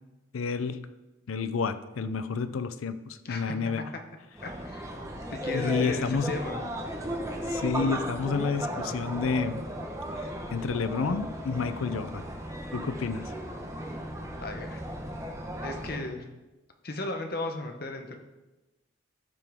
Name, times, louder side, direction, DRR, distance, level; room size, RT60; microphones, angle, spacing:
voice 1, 0.3-0.9 1.3-3.9 5.5-6.4 7.5-9.7 10.2-12.2 12.7-13.3, left 5 dB, 85° left, 12 dB, 0.5 m, -30 dB
voice 2, 3.2-3.6 4.4-4.9 5.3-6.6 14.4-14.8 15.6-16.2 16.8-18.2, left 2 dB, 45° left, 5 dB, 0.9 m, -35 dB
sound 1, 4.3-16.1, equal, 15° right, 1.0 m, -36 dB
13.5 x 5.9 x 3.6 m, 1.1 s
head